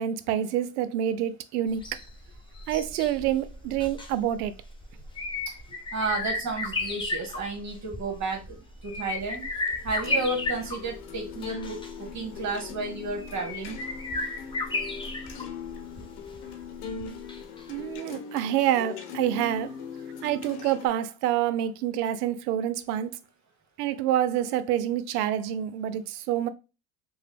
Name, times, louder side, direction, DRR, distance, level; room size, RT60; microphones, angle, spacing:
voice 1, 0.0-1.9 2.7-4.5 17.7-19.8 20.2-23.2 23.8-26.5, right 11 dB, 90° right, 0.5 m, -27 dB
sound 1, 1.7-17.6 17.9-18.0, left 3 dB, 10° left, 0.4 m, -35 dB
voice 2, 5.9-8.6 8.8-9.4 9.8-11.8 12.1-13.8, right 3 dB, 35° right, 1.3 m, -32 dB
sound 2, 9.2-20.9, left 6 dB, 75° left, 0.9 m, -40 dB
2.9 x 2.1 x 3.3 m
supercardioid pair, 95°, 45 cm